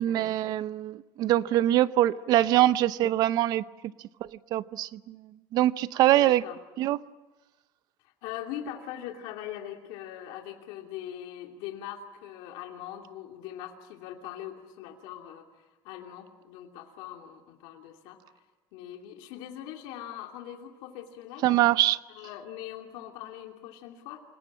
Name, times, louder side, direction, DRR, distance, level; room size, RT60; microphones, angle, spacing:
voice 1, 0.0-3.6 4.5-5.2 5.5-6.4 6.8-7.0 21.4-22.0, right 14 dB, 50° right, 16 dB, 0.7 m, -23 dB
voice 2, 6.1-6.6 8.0-18.2 18.7-21.6 22.1-24.2, left 11 dB, 75° left, 2 dB, 2.9 m, -41 dB
28.5 x 18.5 x 8.7 m, 1.2 s
cardioid pair, 155°, 8 cm